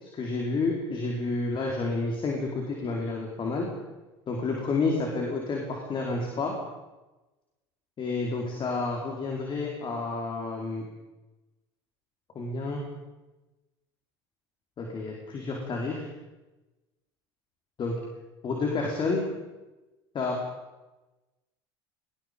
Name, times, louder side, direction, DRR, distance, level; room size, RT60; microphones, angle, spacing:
voice 1, 0.0-3.7 4.3-6.5 8.0-10.8 12.3-12.8 14.8-16.0 17.8-17.9 18.4-19.3 20.1-20.4, left 3 dB, 40° left, 0 dB, 4.9 m, -30 dB
24.0 x 21.0 x 5.5 m, 1.1 s
hypercardioid pair, 80°, 13 cm